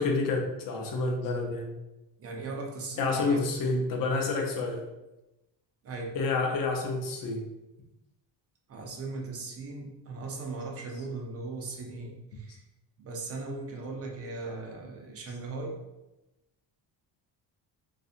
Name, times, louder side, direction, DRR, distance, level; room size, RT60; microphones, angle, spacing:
voice 1, 0.0-1.7 3.0-4.8 6.1-7.4, left 3 dB, 50° left, 2 dB, 0.6 m, -28 dB
voice 2, 2.2-3.5 5.8-6.2 8.7-12.6 13.0-15.8, right 3 dB, 35° right, 0 dB, 0.5 m, -38 dB
2.5 x 2.4 x 2.4 m, 0.97 s
cardioid pair, 120°, 46 cm